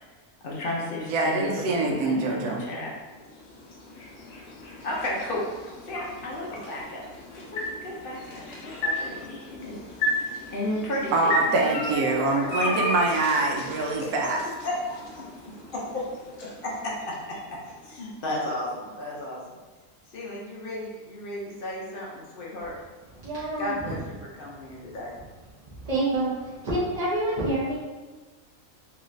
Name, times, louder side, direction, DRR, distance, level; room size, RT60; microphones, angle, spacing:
voice 1, 0.4-2.9 4.8-5.4 5.9-7.0 7.4-9.8 10.1-12.8 13.1-13.2 14.0-14.3 14.6-15.3 15.7-16.0 16.6-17.6 17.8-19.4 20.1-22.8 23.6-25.1, left 1 dB, 55° left, -4 dB, 0.6 m, -34 dB
voice 2, 1.1-2.6 11.1-14.4, right 2 dB, 90° right, 0 dB, 1.1 m, -24 dB
sound 1, 2.6-18.7, left 1 dB, 75° left, 1.1 m, -35 dB
voice 3, 23.2-24.0 25.7-27.8, right 1 dB, 50° right, -9 dB, 0.5 m, -28 dB
3.0 x 2.5 x 3.1 m, 1.3 s
omnidirectional pair, 1.5 m